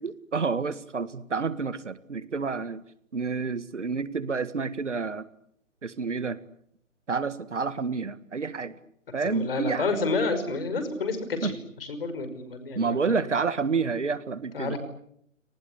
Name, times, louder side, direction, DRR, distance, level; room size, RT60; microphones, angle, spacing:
voice 1, 0.0-2.8 3.1-5.3 5.8-6.4 7.1-8.7 9.1-9.9 11.4-11.5 12.7-14.8, right 5 dB, 60° right, 15 dB, 1.9 m, -29 dB
voice 2, 9.2-11.6 11.9-13.2 14.5-14.8, left 3 dB, 45° left, 9 dB, 5.9 m, -29 dB
29.5 x 19.5 x 10.0 m, 0.71 s
figure-of-eight pair, 140°, 39 cm